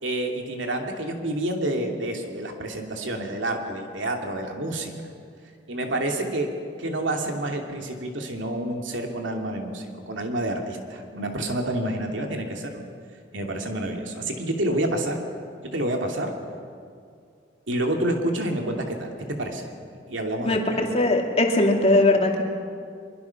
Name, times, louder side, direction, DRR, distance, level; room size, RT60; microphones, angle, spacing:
voice 1, 0.0-4.9 5.7-6.5 6.8-12.9 13.3-15.2 15.6-16.3 17.7-19.1 19.4-19.7 20.1-20.8, right 1 dB, 80° right, 3 dB, 2.7 m, -28 dB
voice 2, 20.4-22.4, left 2 dB, 35° left, 2 dB, 2.5 m, -20 dB
23.5 x 23.0 x 5.9 m, 2.3 s
head